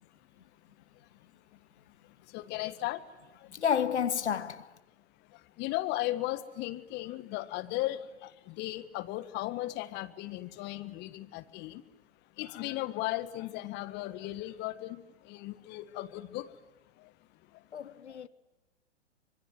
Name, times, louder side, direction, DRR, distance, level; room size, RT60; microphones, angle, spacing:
voice 1, 2.3-3.0 5.6-8.0 8.5-11.8 12.4-15.0 15.3-16.5, left 16 dB, 30° left, 1.5 m, -36 dB
voice 2, 3.5-4.7 17.7-18.3, left 8 dB, 75° left, 1.1 m, -30 dB
25.5 x 23.5 x 9.4 m
figure-of-eight pair, 115°, 34 cm